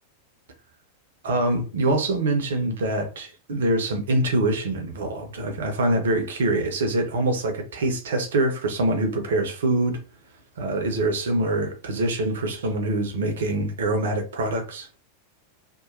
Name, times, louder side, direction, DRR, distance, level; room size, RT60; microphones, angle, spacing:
voice 1, 1.2-10.0 10.6-14.9, right 2 dB, 60° right, 0.7 m, -24 dB
2.9 x 2.2 x 2.5 m
figure-of-eight pair, 90°, 0 cm